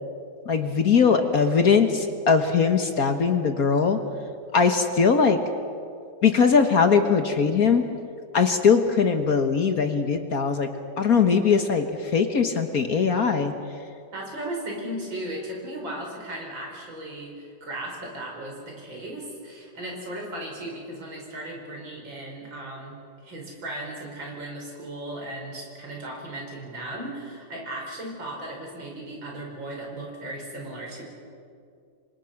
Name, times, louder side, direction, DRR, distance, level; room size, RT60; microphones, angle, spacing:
voice 1, 0.4-4.0 4.5-5.4 6.2-7.8 8.3-10.7 11.0-13.5, left 5 dB, 50° left, 6 dB, 1.6 m, -20 dB
voice 2, 14.1-31.0, right 1 dB, 70° right, 0 dB, 5.8 m, -36 dB
28.0 x 24.5 x 5.9 m, 2.4 s
omnidirectional pair, 2.2 m